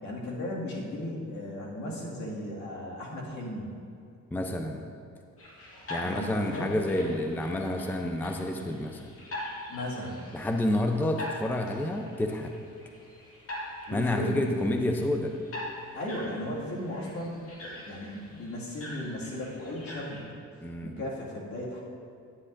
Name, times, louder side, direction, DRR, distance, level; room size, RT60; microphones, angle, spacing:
voice 1, 0.0-3.7 6.0-6.8 9.7-10.3 13.9-14.7 15.9-20.2 20.8-21.8, left 1 dB, 65° left, -4 dB, 2.2 m, -36 dB
voice 2, 4.3-4.9 5.9-9.1 10.3-12.5 13.9-15.3 20.6-20.9, left 1 dB, 5° left, 4 dB, 0.5 m, -29 dB
sound 1, 5.4-20.2, left 1 dB, 50° left, 2.1 m, -43 dB
10.0 x 9.6 x 2.6 m, 2.6 s
cardioid pair, 90°, 30 cm